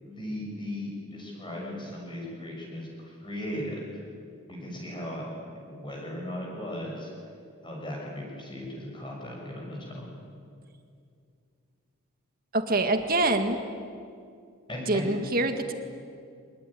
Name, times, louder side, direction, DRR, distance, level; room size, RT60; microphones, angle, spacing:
voice 1, 0.0-3.8 4.5-5.3 5.7-7.1 7.6-10.1 14.7-15.1, left 1 dB, 20° left, -2 dB, 6.5 m, -37 dB
voice 2, 12.5-13.6 14.9-15.7, right 2 dB, 40° right, 6 dB, 1.9 m, -25 dB
24.5 x 21.0 x 10.0 m, 2.4 s
head